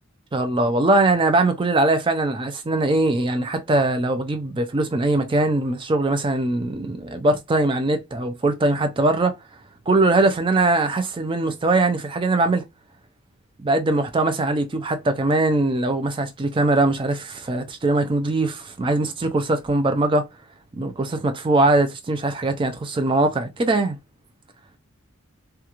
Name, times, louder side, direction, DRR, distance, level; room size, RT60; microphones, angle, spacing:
voice 1, 0.3-9.3 9.9-12.6 13.6-20.3 20.8-24.0, right 2 dB, 25° right, 0.4 m, -21 dB
2.4 x 2.3 x 2.9 m
head